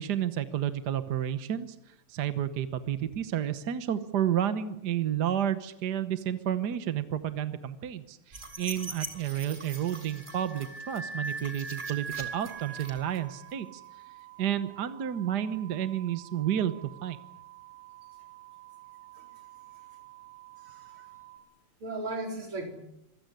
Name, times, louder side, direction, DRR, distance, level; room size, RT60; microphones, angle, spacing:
voice 1, 0.0-1.7 2.1-13.8 14.4-16.7 17.0-17.2, right 10 dB, 55° right, 11 dB, 1.5 m, -31 dB
sound 1, 8.3-13.5, right 3 dB, 20° right, 2.8 m, -40 dB
sound 2, 12.3-21.4, right 19 dB, 60° left, 7.4 m, -51 dB
voice 2, 20.6-21.1 21.8-22.7, right 2 dB, 70° right, 4 dB, 5.0 m, -37 dB
25.5 x 16.0 x 9.8 m, 0.81 s
omnidirectional pair, 2.4 m